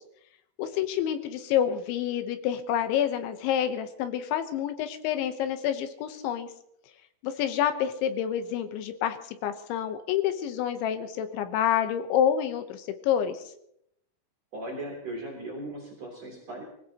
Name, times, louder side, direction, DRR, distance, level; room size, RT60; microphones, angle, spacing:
voice 1, 0.6-6.5 7.2-9.2 9.4-13.4, left 9 dB, 75° left, 8 dB, 3.3 m, -28 dB
voice 2, 14.5-16.6, right 1 dB, 35° right, -3 dB, 4.3 m, -38 dB
24.0 x 17.0 x 3.0 m, 0.76 s
omnidirectional pair, 5.5 m